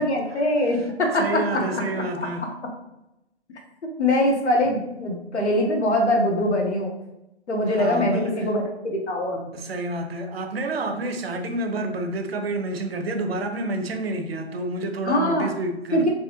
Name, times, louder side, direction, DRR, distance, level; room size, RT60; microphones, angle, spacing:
voice 1, 0.0-2.3 4.0-6.9 7.5-9.5 15.1-15.5 15.9-16.1, left 1 dB, 80° left, 1.0 m, -23 dB
voice 2, 1.2-2.5 7.7-8.5 9.5-16.1, right 2 dB, 60° right, 0.6 m, -29 dB
3.4 x 2.1 x 2.9 m
hypercardioid pair, 150°, 34 cm